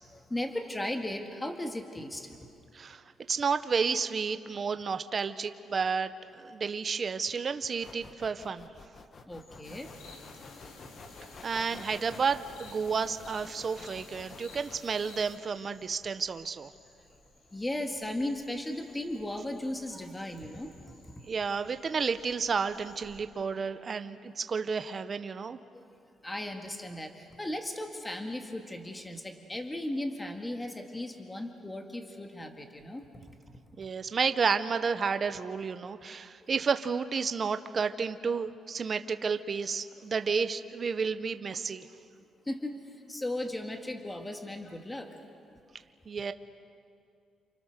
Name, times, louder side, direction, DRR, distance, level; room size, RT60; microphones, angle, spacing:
voice 1, 0.1-2.3 9.3-9.9 10.8-11.4 17.5-20.7 21.0-21.1 25.7-25.8 26.2-33.1 36.4-36.5 42.5-42.8 43.1-45.1, left 1 dB, 10° left, 4 dB, 1.8 m, -36 dB
voice 2, 2.7-8.7 11.4-16.7 21.3-25.6 33.8-41.9 46.1-46.3, right 5 dB, 30° right, 10 dB, 0.8 m, -31 dB
sound 1, 7.8-14.8, left 4 dB, 35° left, 1.1 m, -51 dB
sound 2, 9.4-23.2, left 1 dB, 55° left, 6.4 m, -61 dB
sound 3, 9.6-15.4, left 3 dB, 85° left, 2.8 m, -50 dB
28.5 x 28.5 x 6.6 m, 2.4 s
cardioid pair, 165°, 0 cm